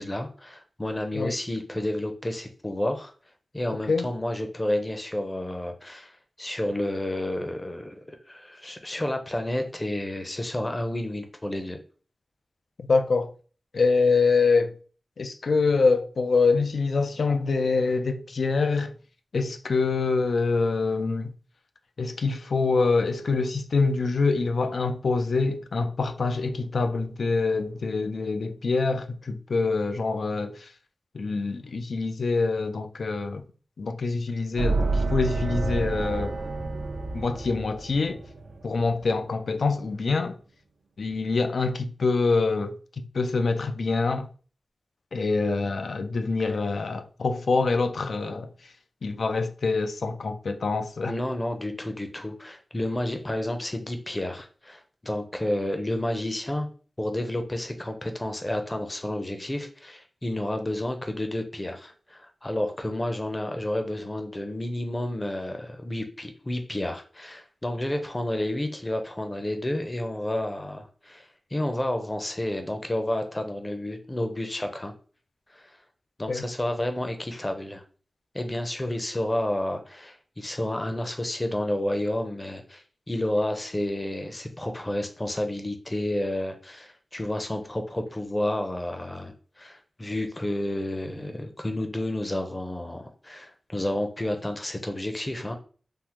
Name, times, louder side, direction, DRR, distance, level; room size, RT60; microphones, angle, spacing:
voice 1, 0.0-3.1 3.5-6.1 6.4-11.8 46.4-46.5 51.0-56.7 57.0-74.9 75.5-75.7 76.2-77.8 78.3-95.6, left 1 dB, 25° left, 0.6 m, -30 dB
voice 2, 12.8-13.3 13.7-14.7 15.2-18.9 19.3-21.3 22.0-30.6 31.1-33.4 33.8-36.4 37.1-38.2 38.6-40.4 41.0-42.7 43.1-44.3 45.1-48.5 49.0-51.1 76.3-76.4, left 4 dB, 80° left, 0.3 m, -25 dB
sound 1, 34.6-39.3, right 3 dB, 90° right, 0.4 m, -29 dB
3.5 x 2.0 x 2.9 m
wide cardioid pair, 60°, 0 cm